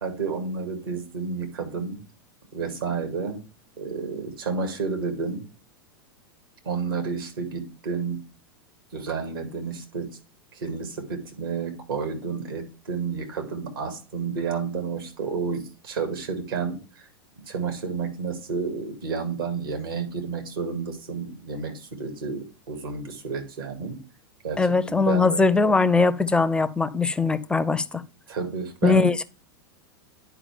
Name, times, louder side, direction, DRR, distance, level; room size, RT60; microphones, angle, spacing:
voice 1, 0.0-2.0 2.5-3.4 3.8-5.5 6.7-8.2 8.9-10.1 10.5-17.1 17.5-24.0 24.4-25.4 28.3-29.1, right 5 dB, 75° right, 2.0 m, -31 dB
voice 2, 24.6-28.0 28.8-29.2, left 4 dB, 5° left, 0.5 m, -21 dB
10.0 x 4.8 x 3.4 m
figure-of-eight pair, 90°, 12 cm